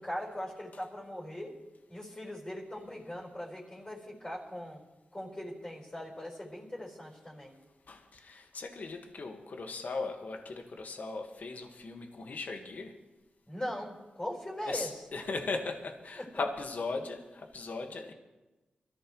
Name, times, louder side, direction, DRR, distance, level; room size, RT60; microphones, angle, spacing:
voice 1, 0.0-1.6 1.9-4.8 5.1-7.5 13.5-15.0 16.2-16.4, left 1 dB, 25° left, -2 dB, 4.4 m, -40 dB
voice 2, 7.9-12.9 14.7-18.1, left 3 dB, 65° left, 4 dB, 1.6 m, -38 dB
23.5 x 14.5 x 3.1 m, 1.1 s
cardioid pair, 60°, 3 cm